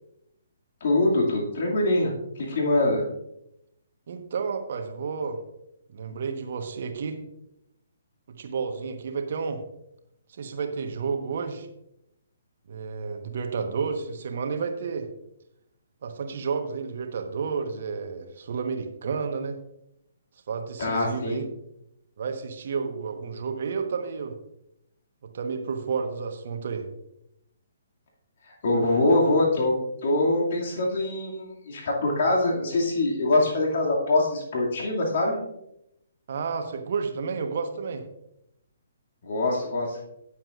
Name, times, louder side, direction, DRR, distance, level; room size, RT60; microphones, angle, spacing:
voice 1, 0.8-3.0 20.8-21.4 28.6-29.7 30.0-35.4 39.2-40.0, left 2 dB, 45° left, -2 dB, 2.4 m, -24 dB
voice 2, 4.1-5.4 5.9-7.2 8.3-9.6 10.3-11.7 12.7-15.1 16.0-19.6 20.5-21.4 22.2-24.4 25.2-26.9 36.3-38.0, right 5 dB, 50° right, 5 dB, 1.2 m, -31 dB
18.0 x 7.4 x 2.5 m, 0.81 s
figure-of-eight pair, 130°, 0 cm